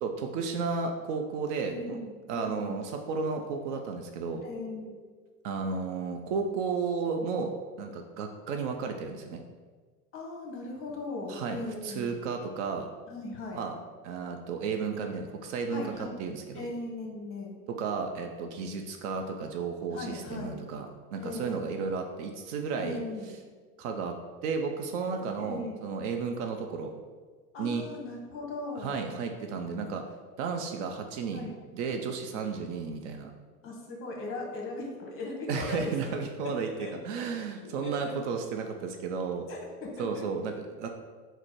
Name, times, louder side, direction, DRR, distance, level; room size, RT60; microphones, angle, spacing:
voice 1, 0.0-2.0 2.3-4.4 5.4-7.5 7.8-9.4 11.3-12.9 13.5-13.7 14.0-15.9 16.2-16.7 17.7-20.9 21.1-23.0 23.8-24.1 24.4-26.9 27.6-27.8 28.8-30.0 30.4-33.3 35.5-39.5 40.0-40.9, right 5 dB, 50° right, 4 dB, 0.5 m, -33 dB
voice 2, 1.6-2.8 4.4-5.0 10.1-12.2 13.1-13.7 15.7-16.3 16.5-17.5 19.9-20.6 21.2-21.8 22.8-23.3 25.4-25.8 27.5-29.0 31.3-31.6 33.6-36.2 36.4-36.9 37.8-38.1 39.5-40.3, left 2 dB, 30° left, 0 dB, 0.9 m, -38 dB
4.0 x 2.0 x 4.4 m, 1.5 s
hypercardioid pair, 105°, 46 cm